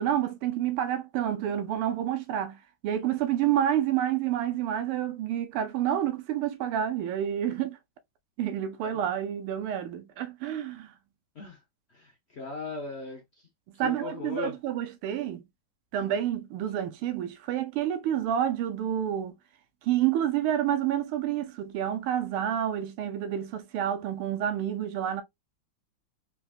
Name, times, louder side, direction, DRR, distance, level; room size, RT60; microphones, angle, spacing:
voice 1, 0.0-7.8 8.4-10.9 13.8-15.4 15.9-19.3 19.8-25.2, right 10 dB, 80° right, 1.6 m, -29 dB
voice 2, 11.9-13.2 13.8-14.6, left 4 dB, 65° left, 0.6 m, -38 dB
3.8 x 3.5 x 2.3 m
omnidirectional pair, 2.4 m